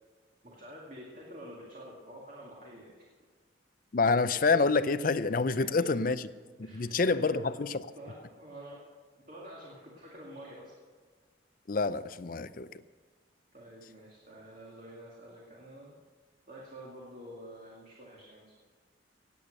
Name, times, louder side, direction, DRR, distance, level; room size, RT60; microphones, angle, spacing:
voice 1, 0.4-3.1 5.6-6.1 6.6-7.6 8.0-8.8 9.3-10.8 13.5-15.9 16.5-18.6, equal, 45° right, -3 dB, 2.2 m, -48 dB
voice 2, 3.9-6.3 6.7-7.8 11.7-12.7, left 4 dB, 50° left, 14 dB, 0.5 m, -27 dB
17.5 x 8.5 x 6.5 m, 1.5 s
head